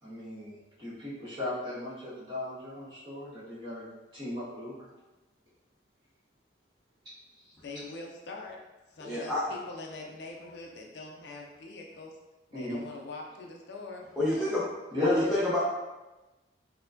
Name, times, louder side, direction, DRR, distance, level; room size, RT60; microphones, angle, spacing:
voice 1, 0.0-3.8 4.1-4.9 12.5-12.8 14.9-15.6, left 1 dB, 25° right, -12 dB, 1.5 m, -36 dB
voice 2, 7.6-8.6 8.9-12.2 12.5-14.1, left 2 dB, 60° left, 0 dB, 0.4 m, -43 dB
voice 3, 9.0-9.4 14.2-14.6 15.0-15.6, left 1 dB, ahead, -10 dB, 0.5 m, -28 dB
4.3 x 2.2 x 2.5 m, 1.1 s
head